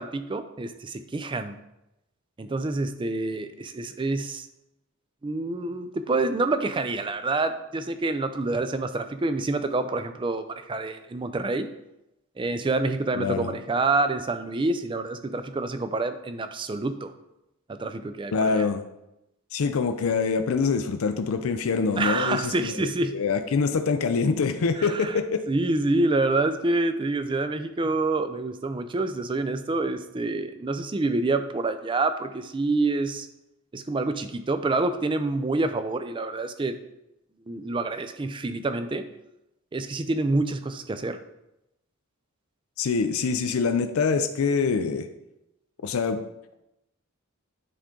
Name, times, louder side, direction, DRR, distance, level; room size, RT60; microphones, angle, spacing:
voice 1, 0.0-1.6 2.4-4.5 5.2-11.7 12.4-17.1 17.7-18.7 22.0-23.2 24.8-25.2 25.5-33.3 33.7-36.8 37.5-39.1 39.7-41.2, right 2 dB, 20° right, 10 dB, 0.4 m, -27 dB
voice 2, 13.1-13.5 18.3-18.8 19.5-25.4 42.8-45.1 45.8-46.2, left 5 dB, 70° left, 8 dB, 0.5 m, -25 dB
10.0 x 3.7 x 3.7 m, 0.88 s
head